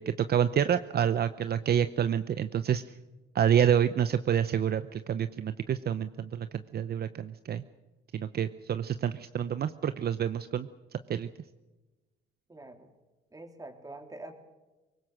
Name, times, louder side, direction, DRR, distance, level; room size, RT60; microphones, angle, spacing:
voice 1, 0.0-2.8 3.3-7.6 8.1-11.3, right 9 dB, 55° right, 12 dB, 0.8 m, -28 dB
voice 2, 12.5-12.9 13.3-14.3, right 2 dB, 20° right, 5 dB, 3.4 m, -45 dB
23.0 x 20.0 x 6.6 m, 1.1 s
cardioid pair, 90°, 20 cm